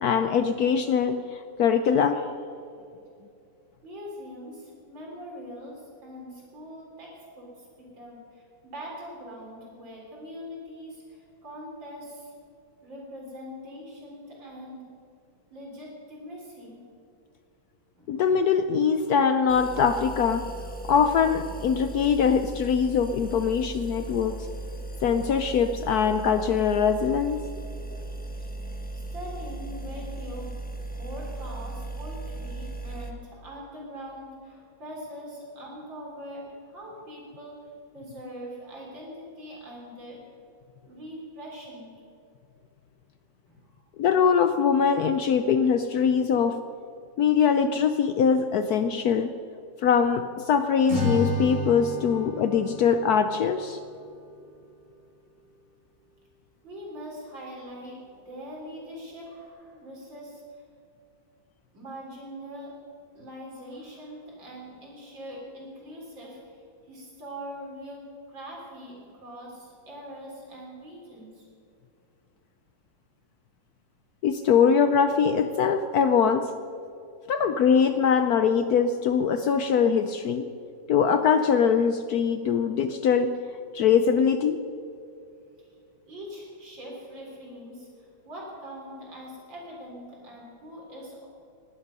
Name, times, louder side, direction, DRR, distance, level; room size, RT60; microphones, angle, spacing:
voice 1, 0.0-2.2 18.1-20.5 20.8-24.5 25.0-27.4 44.0-46.6 47.2-49.3 49.8-53.8 74.2-76.5 77.3-80.5 80.9-83.3 83.7-84.6, left 6 dB, 70° left, 9 dB, 1.0 m, -22 dB
voice 2, 3.8-12.3 12.8-14.8 15.5-16.8 18.0-18.1 28.0-28.1 28.4-28.5 28.9-30.5 31.0-37.6 37.9-40.2 40.8-41.9 43.5-43.8 56.6-58.0 58.3-60.6 61.7-62.7 63.1-66.6 66.9-68.0 68.3-71.4 86.1-91.3, equal, 75° right, -2 dB, 4.7 m, -42 dB
sound 1, 19.5-33.1, right 2 dB, 5° left, 0.7 m, -37 dB
Acoustic guitar / Strum, 50.9-54.2, left 2 dB, 30° right, 4.7 m, -31 dB
19.5 x 11.5 x 5.5 m, 2.6 s
omnidirectional pair, 2.1 m